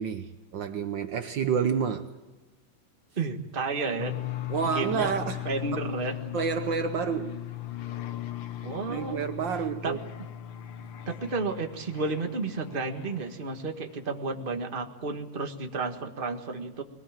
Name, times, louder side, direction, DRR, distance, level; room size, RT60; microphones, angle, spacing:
voice 1, 0.0-2.1 4.5-5.4 5.7-5.9 6.3-7.4 8.9-10.0, right 6 dB, 85° right, 1.0 m, -29 dB
voice 2, 3.1-4.1 4.6-5.1 5.4-6.2 8.6-9.3 9.8-10.0 11.1-16.8, right 3 dB, 25° right, 1.2 m, -32 dB
sound 1, 4.0-13.5, left 12 dB, 70° left, 1.1 m, -38 dB
21.5 x 19.5 x 7.5 m
omnidirectional pair, 3.4 m